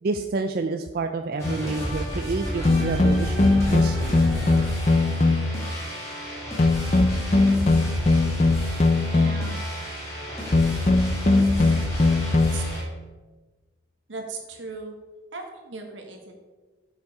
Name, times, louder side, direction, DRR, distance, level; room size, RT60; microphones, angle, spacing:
voice 1, 0.0-4.2, right 3 dB, 50° right, 6 dB, 0.4 m, -29 dB
sound 1, 1.4-1.7 2.6-5.7 6.6-9.6 10.5-12.7, left 2 dB, 35° left, 0.5 m, -21 dB
sound 2, 1.4-12.8, equal, 15° left, 2.5 m, -32 dB
voice 2, 9.1-9.6 12.4-12.6 14.1-14.9 15.3-16.4, right 3 dB, 80° right, 2 dB, 1.5 m, -37 dB
7.0 x 6.6 x 4.8 m, 1.3 s
head